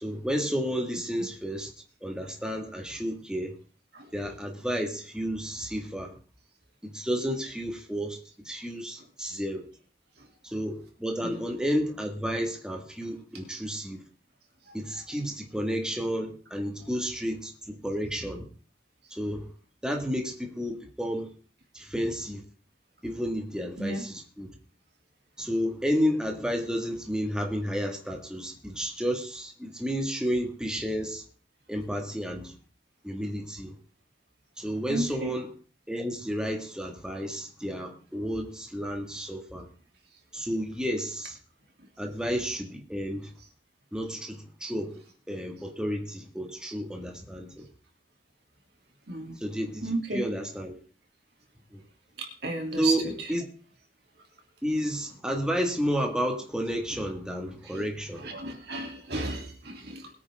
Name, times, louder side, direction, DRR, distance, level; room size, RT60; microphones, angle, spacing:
voice 1, 0.0-1.7 2.0-3.5 4.1-6.1 6.8-8.2 8.5-9.6 10.4-14.0 14.7-18.5 19.1-19.5 19.8-21.3 21.7-22.4 23.0-24.5 25.4-31.2 31.7-32.6 33.0-33.8 34.6-35.5 35.9-39.7 40.3-41.4 42.0-43.3 43.9-45.0 45.3-47.7 49.4-50.7 51.7-51.8 52.8-53.5 54.6-58.2, equal, 5° right, 2.0 m, -31 dB
voice 2, 34.9-35.3 49.1-49.4 49.8-50.2 52.2-53.1 57.7-57.8 58.2-60.1, right 2 dB, 65° right, 3.0 m, -33 dB
21.0 x 9.4 x 3.7 m
head